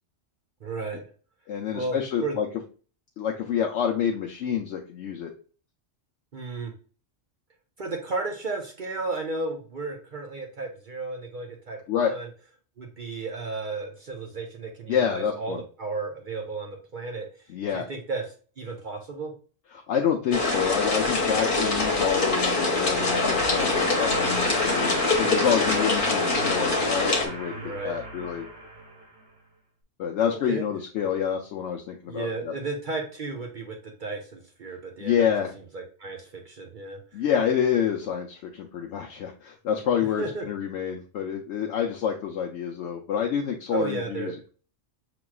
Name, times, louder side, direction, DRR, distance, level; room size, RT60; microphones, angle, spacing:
voice 1, 0.6-1.0 1.7-2.3 6.3-6.7 7.8-12.3 12.8-17.3 17.7-18.2 18.6-19.3 27.6-28.0 30.5-30.6 32.1-35.3 35.7-37.2 40.2-40.4 43.7-44.4, right 3 dB, 50° right, 2 dB, 0.7 m, -33 dB
voice 2, 1.5-2.5 3.2-5.3 11.9-12.1 14.9-15.6 17.5-17.9 19.7-28.5 30.0-32.5 35.0-35.5 37.1-44.5, left 8 dB, 75° left, 0 dB, 0.9 m, -28 dB
sound 1, 20.3-27.3, left 3 dB, 45° left, 1.1 m, -24 dB
sound 2, 22.2-29.3, right 2 dB, 75° right, 1.5 m, -36 dB
6.0 x 2.9 x 2.3 m, 0.39 s
omnidirectional pair, 1.3 m